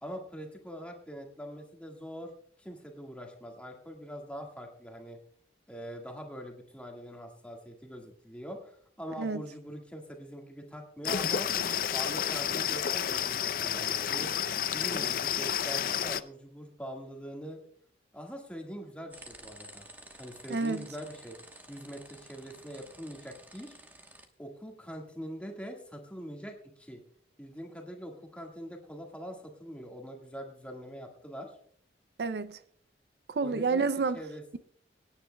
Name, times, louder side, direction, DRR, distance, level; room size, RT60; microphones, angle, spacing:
voice 1, 0.0-2.3 2.6-5.2 5.7-11.5 11.9-14.4 14.7-17.6 18.1-19.9 20.2-21.4 21.7-23.8 24.4-27.0 27.4-31.6 33.4-33.8 34.1-34.6, equal, 5° left, 1.6 m, -43 dB
sound 1, 11.0-16.2, left 8 dB, 50° left, 0.4 m, -30 dB
sound 2, 19.1-24.3, right 1 dB, 10° right, 1.0 m, -51 dB
voice 2, 20.5-20.8 32.2-32.6 33.3-34.2, right 4 dB, 65° right, 0.4 m, -29 dB
25.0 x 9.8 x 2.2 m
head